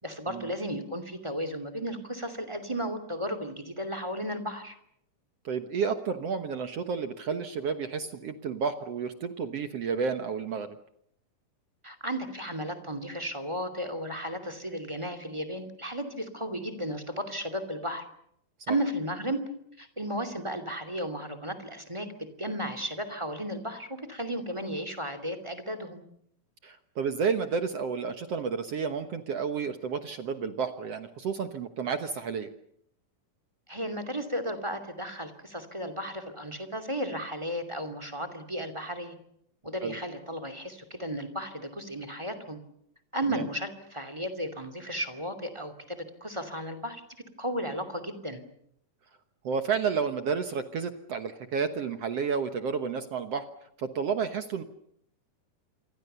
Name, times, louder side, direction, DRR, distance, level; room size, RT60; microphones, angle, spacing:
voice 1, 0.0-4.8 11.8-18.0 18.7-19.4 19.8-26.0 33.7-39.1 39.6-42.6 43.1-47.0 47.4-48.4, equal, 10° right, 11 dB, 2.1 m, -34 dB
voice 2, 5.5-10.7 18.7-18.8 26.6-32.5 39.8-40.0 43.3-43.4 49.4-53.4 53.8-54.6, right 6 dB, 60° right, 8 dB, 1.8 m, -31 dB
28.0 x 24.0 x 6.9 m, 0.73 s
omnidirectional pair, 4.0 m